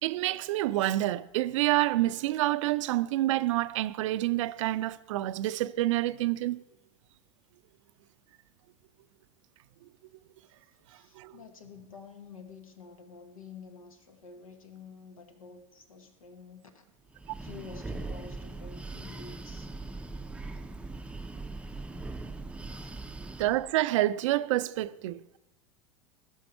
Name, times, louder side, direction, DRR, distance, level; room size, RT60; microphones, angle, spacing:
voice 1, 0.0-6.6 11.2-11.3 23.4-25.2, right 16 dB, 65° right, 0.4 m, -28 dB
voice 2, 10.9-16.9 17.4-19.8 22.7-23.1, left 5 dB, 85° left, 1.2 m, -49 dB
Breathing, 17.1-23.7, right 2 dB, 5° right, 0.5 m, -40 dB
16.0 x 6.3 x 4.4 m
hypercardioid pair, 85°, 17 cm